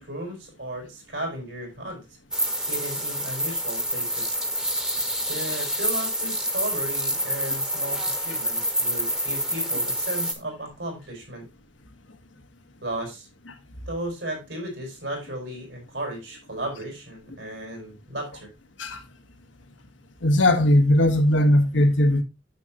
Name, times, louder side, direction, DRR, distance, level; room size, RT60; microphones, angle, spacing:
voice 1, 0.0-2.0 2.7-4.3 5.3-11.5 12.8-13.3 13.9-18.5, right 1 dB, 75° right, 5.2 m, -35 dB
sound 1, 2.3-10.3, equal, 5° right, 1.0 m, -27 dB
voice 2, 20.2-22.2, left 1 dB, 90° left, 1.4 m, -18 dB
9.3 x 7.2 x 2.9 m
head